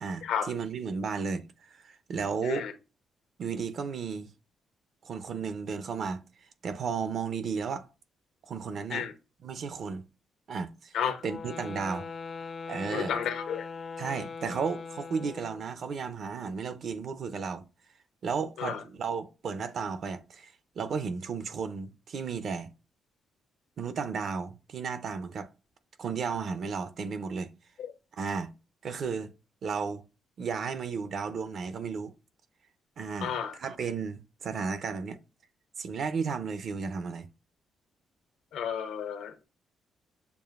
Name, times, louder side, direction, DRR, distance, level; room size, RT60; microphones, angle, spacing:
voice 1, 0.0-2.7 3.4-4.3 5.0-6.2 6.6-7.9 8.4-9.1 9.4-10.0 10.5-10.9 11.2-12.1 12.7-13.1 14.0-17.7 18.2-22.7 23.8-25.5 26.0-27.5 28.1-28.5 28.8-29.3 29.6-30.0 30.4-32.1 33.0-35.2 35.8-37.3, right 5 dB, 55° right, 0.5 m, -34 dB
sound 1, 11.2-15.7, left 4 dB, 40° left, 0.4 m, -40 dB
voice 2, 12.9-13.7 18.6-18.8 33.2-33.5 38.5-39.5, left 8 dB, 85° left, 0.8 m, -32 dB
6.9 x 2.5 x 2.4 m
cardioid pair, 120°, 0 cm